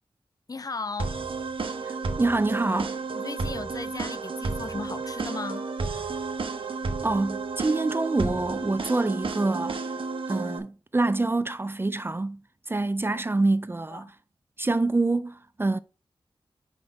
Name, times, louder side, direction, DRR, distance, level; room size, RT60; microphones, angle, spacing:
voice 1, 0.5-1.2 3.1-5.7 13.1-13.3 13.9-14.1, left 4 dB, 40° left, 0.5 m, -36 dB
sound 1, 1.0-10.6, right 4 dB, 70° right, 0.9 m, -32 dB
voice 2, 1.9-2.9 7.0-9.8 10.3-12.4 12.7-14.1 14.6-15.8, right 2 dB, 25° right, 0.4 m, -26 dB
5.0 x 4.3 x 5.6 m
wide cardioid pair, 70°, 9 cm